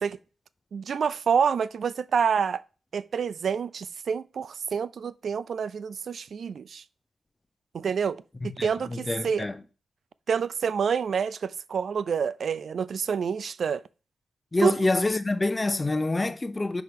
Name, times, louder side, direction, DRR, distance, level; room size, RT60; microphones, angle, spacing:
voice 1, 0.7-2.6 2.9-6.8 7.7-9.5 10.3-13.8 14.6-14.7, right 6 dB, 70° right, 0.4 m, -28 dB
voice 2, 8.4-9.6 14.5-16.8, left 2 dB, 25° left, 0.8 m, -27 dB
5.6 x 4.8 x 5.3 m
cardioid pair, 65°, 0 cm